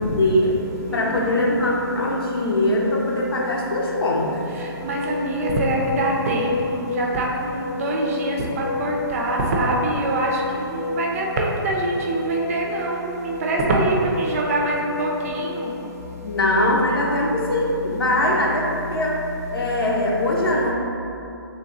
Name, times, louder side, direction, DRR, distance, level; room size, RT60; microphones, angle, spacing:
voice 1, 0.1-0.5 0.9-4.5 16.2-19.2 19.5-20.7, left 1 dB, 70° left, -3 dB, 0.9 m, -22 dB
sound 1, 0.6-17.1, left 4 dB, 45° left, 0.4 m, -33 dB
voice 2, 0.9-1.5 4.8-10.3 11.0-15.7, right 2 dB, 35° right, -1 dB, 0.5 m, -24 dB
3.3 x 2.9 x 3.8 m, 2.7 s
hypercardioid pair, 150°, 13 cm